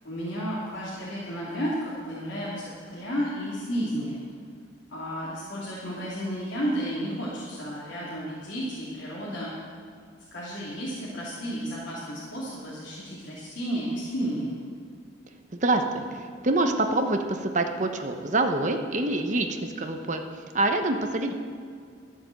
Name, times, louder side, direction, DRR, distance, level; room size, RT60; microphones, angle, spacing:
voice 1, 0.0-4.2 4.9-9.5 10.3-14.5, equal, 80° left, -9 dB, 2.9 m, -32 dB
voice 2, 15.6-21.3, right 2 dB, 40° right, 5 dB, 1.0 m, -26 dB
12.5 x 7.8 x 7.8 m, 2.2 s
head